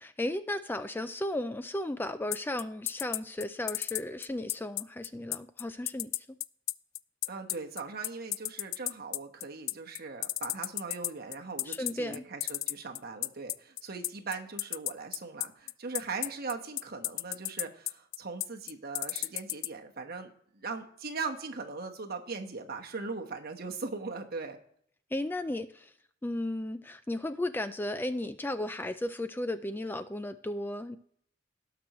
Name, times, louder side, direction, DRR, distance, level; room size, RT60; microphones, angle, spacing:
voice 1, 0.0-6.3 11.7-12.2 25.1-25.9 26.2-31.0, left 1 dB, 10° left, 11 dB, 0.3 m, -35 dB
sound 1, 2.3-19.7, left 18 dB, 85° left, 0.4 m, -32 dB
voice 2, 7.3-24.6, right 4 dB, 50° right, 3 dB, 1.2 m, -40 dB
18.0 x 6.1 x 3.0 m, 0.65 s
head